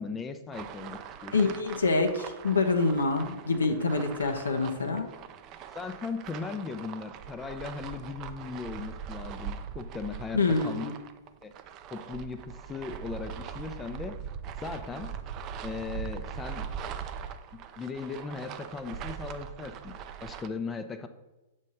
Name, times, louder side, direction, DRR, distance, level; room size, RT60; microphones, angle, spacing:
voice 1, 0.0-1.4 4.0-4.2 5.7-10.9 11.4-11.5 11.9-14.1 14.6-15.1 15.6-16.7 17.8-19.9 20.2-21.1, left 4 dB, 15° left, 9 dB, 0.6 m, -38 dB
sound 1, 0.5-20.5, right 8 dB, 35° right, 0.5 m, -41 dB
voice 2, 1.3-5.1 10.3-10.9, left 3 dB, 80° left, 5 dB, 0.7 m, -26 dB
7.3 x 3.2 x 5.5 m, 1.0 s
figure-of-eight pair, 105°, 0 cm